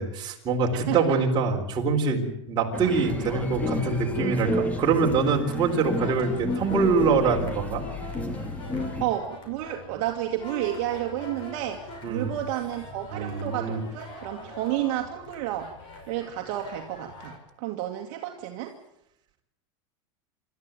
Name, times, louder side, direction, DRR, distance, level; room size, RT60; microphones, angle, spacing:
voice 1, 0.0-7.8 12.0-12.3 13.1-13.8, right 4 dB, 25° right, 1 dB, 4.0 m, -24 dB
voice 2, 0.9-1.2 9.0-15.7 16.1-18.7, right 13 dB, 50° right, 3 dB, 2.1 m, -31 dB
sound 1, 2.7-9.0, left 1 dB, 10° left, 2.1 m, -31 dB
sound 2, 5.6-17.4, left 2 dB, 30° left, 5.4 m, -44 dB
26.0 x 13.0 x 9.2 m, 0.82 s
supercardioid pair, 155°, 16 cm